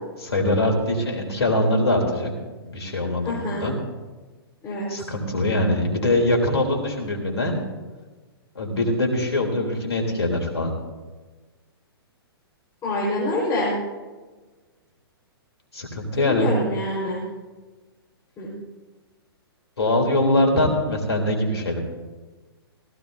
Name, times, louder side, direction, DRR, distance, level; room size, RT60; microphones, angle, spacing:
voice 1, 0.2-2.3 2.6-3.8 4.9-7.6 8.6-10.7 15.7-16.5 19.8-21.8, left 1 dB, 85° left, 1 dB, 3.5 m, -22 dB
voice 2, 3.2-3.7 4.6-4.9 12.8-13.7 16.1-17.2 18.4-18.5, left 1 dB, 25° left, -6 dB, 4.7 m, -26 dB
17.5 x 17.0 x 2.7 m, 1.3 s
hypercardioid pair, 120°, 13 cm